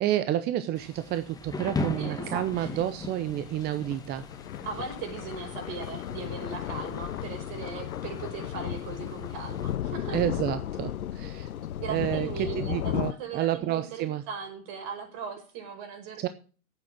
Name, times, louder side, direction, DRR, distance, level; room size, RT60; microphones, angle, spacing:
voice 1, 0.0-4.3 10.1-11.5 11.9-14.2 16.2-16.3, right 12 dB, 25° right, 12 dB, 0.6 m, -30 dB
Thunder / Rain, 0.7-9.8, left 2 dB, 10° left, 1.2 m, -40 dB
voice 2, 2.0-2.7 4.6-10.2 11.8-16.3, right 5 dB, 45° right, 4 dB, 5.4 m, -38 dB
sound 1, 2.2-13.1, left 11 dB, 75° left, 0.8 m, -35 dB
10.5 x 8.9 x 7.5 m, 0.38 s
hypercardioid pair, 110°, 43 cm